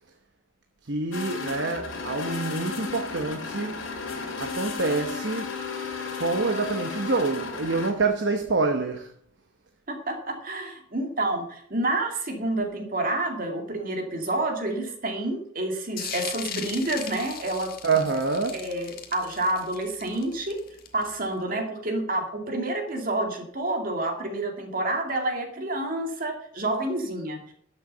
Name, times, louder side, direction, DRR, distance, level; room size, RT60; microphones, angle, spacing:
voice 1, 0.8-3.8 4.4-5.5 6.2-9.1 17.8-18.6, right 3 dB, 60° right, 1.0 m, -26 dB
sound 1, 1.1-7.9, left 4 dB, 80° left, 2.7 m, -34 dB
voice 2, 9.9-17.7 18.5-20.6 20.9-27.5, right 2 dB, 45° right, 2.2 m, -29 dB
sound 2, 16.0-21.3, left 8 dB, 50° left, 1.5 m, -38 dB
12.5 x 6.7 x 6.7 m
head